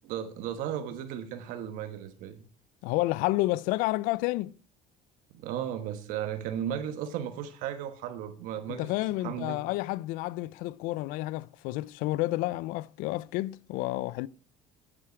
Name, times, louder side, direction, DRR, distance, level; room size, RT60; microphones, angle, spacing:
voice 1, 0.1-2.4 5.3-8.9 9.2-9.6, right 10 dB, 65° right, 1.3 m, -35 dB
voice 2, 2.8-4.5 8.7-14.3, left 18 dB, 75° left, 0.4 m, -30 dB
10.0 x 7.7 x 5.8 m
cardioid pair, 170°, 15 cm